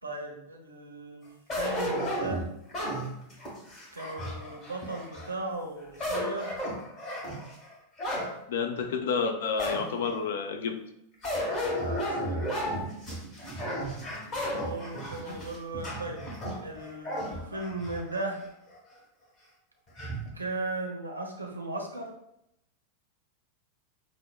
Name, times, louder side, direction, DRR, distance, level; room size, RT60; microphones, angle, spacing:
voice 1, 0.0-2.5 3.9-6.6 11.8-12.8 14.2-16.2 16.6-18.4 20.3-22.1, right 2 dB, 80° right, 1 dB, 0.7 m, -37 dB
sound 1, 1.5-5.3 5.8-8.3 8.8-8.9 9.6-10.2 11.2-18.3 18.7-18.8 20.0-20.3, equal, 30° left, 1.3 m, -33 dB
voice 2, 8.5-10.8, left 5 dB, 60° left, 7 dB, 0.4 m, -30 dB
6.0 x 2.0 x 2.2 m, 0.79 s
figure-of-eight pair, 90°, 0 cm